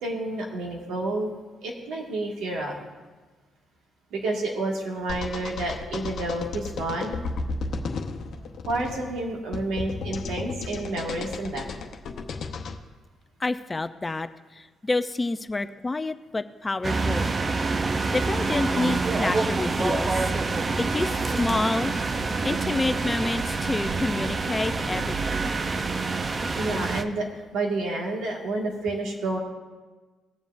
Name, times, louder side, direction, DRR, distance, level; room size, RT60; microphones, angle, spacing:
voice 1, 0.0-1.3 1.6-2.7 4.1-7.3 8.7-11.7 22.3-22.5 26.6-27.3 27.5-29.4, right 2 dB, 85° right, -1 dB, 1.8 m, -29 dB
sound 1, 5.1-12.8, left 4 dB, 65° left, 0.8 m, -34 dB
voice 2, 13.4-14.3 14.6-17.3 18.1-20.2 20.8-21.9 22.4-25.5, left 2 dB, 20° left, 11 dB, 0.5 m, -28 dB
sound 2, 16.8-27.0, right 3 dB, 35° right, 0.6 m, -26 dB
19.5 x 7.1 x 2.6 m, 1.3 s
cardioid pair, 90°, 0 cm